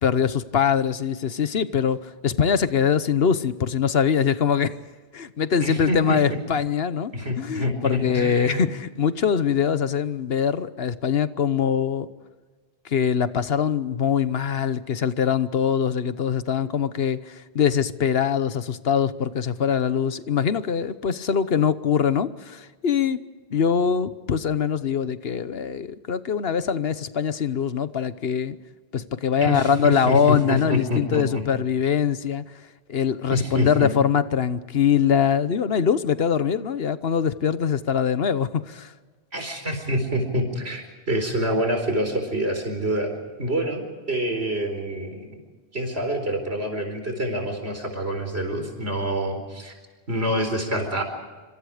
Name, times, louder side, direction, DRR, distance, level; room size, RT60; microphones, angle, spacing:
voice 1, 0.0-4.7 5.1-12.1 12.8-23.2 23.5-28.6 28.9-32.4 32.9-38.9, left 7 dB, 70° left, 14 dB, 1.2 m, -23 dB
voice 2, 5.6-6.2 7.1-8.6 29.4-31.2 33.3-33.9 39.3-45.3 45.7-49.7 50.1-51.0, equal, 80° right, 6 dB, 4.7 m, -26 dB
27.0 x 25.5 x 5.0 m, 1.4 s
omnidirectional pair, 1.1 m